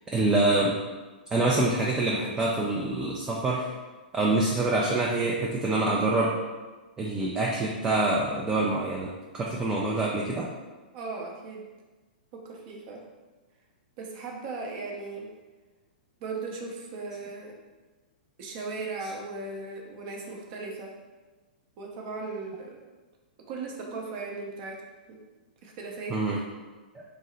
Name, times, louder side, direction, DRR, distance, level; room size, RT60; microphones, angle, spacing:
voice 1, 0.1-0.8 1.3-3.7 4.1-6.4 7.0-9.1 9.3-10.5 19.0-19.1 26.1-26.4 26.9-27.0, right 2 dB, 15° right, -3 dB, 0.3 m, -26 dB
voice 2, 10.9-11.6 12.3-13.0 14.0-15.3 16.2-17.5 18.4-20.9 21.8-22.8 23.5-24.8 25.1-25.2 25.6-26.2, right 3 dB, 45° right, 0 dB, 0.6 m, -37 dB
2.7 x 2.0 x 3.8 m, 1.2 s
hypercardioid pair, 115°, 5 cm